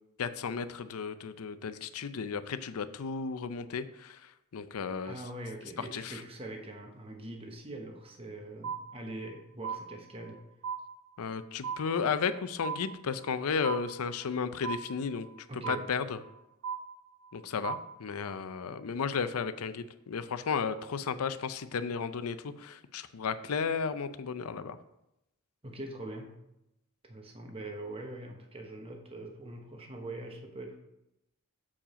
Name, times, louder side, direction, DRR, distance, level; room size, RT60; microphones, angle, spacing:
voice 1, 0.2-5.2 5.8-6.2 11.2-15.3 15.7-16.2 17.3-24.8, left 6 dB, 85° left, 12 dB, 0.5 m, -34 dB
voice 2, 5.0-10.4 15.5-15.9 25.6-26.4 27.0-30.8, right 1 dB, 25° right, 3 dB, 0.9 m, -43 dB
sound 1, 8.6-9.3 9.6-10.4 10.6-11.4 11.6-12.4 12.6-13.4 13.6-14.4 14.6-15.4 15.6-16.4 16.6-17.4 17.6-18.4, right 7 dB, 55° right, 1.0 m, -38 dB
7.3 x 4.8 x 5.0 m, 0.85 s
head